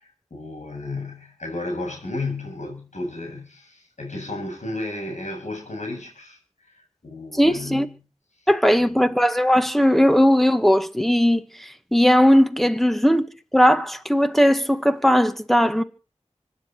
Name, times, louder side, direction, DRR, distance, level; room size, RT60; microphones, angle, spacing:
voice 1, 0.0-7.9 8.4-9.0, left 2 dB, 80° left, 7.6 m, -33 dB
voice 2, 7.3-7.9 8.5-13.3 13.5-15.8, equal, ahead, 1.7 m, -18 dB
25.5 x 10.0 x 4.5 m
wide cardioid pair, 40°, 12 cm